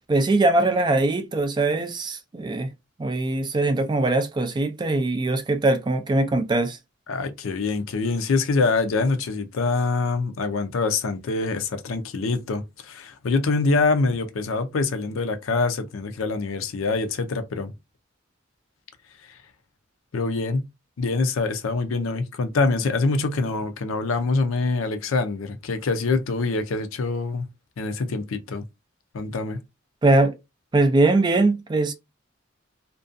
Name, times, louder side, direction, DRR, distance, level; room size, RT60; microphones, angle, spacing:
voice 1, 0.1-2.7 3.0-6.8 30.0-30.3 30.7-31.9, right 2 dB, 20° right, 0.3 m, -21 dB
voice 2, 7.1-17.7 19.2-19.3 20.1-20.6 21.0-27.5 27.8-28.6 29.1-29.6, left 3 dB, 80° left, 0.5 m, -25 dB
2.5 x 2.2 x 2.4 m
head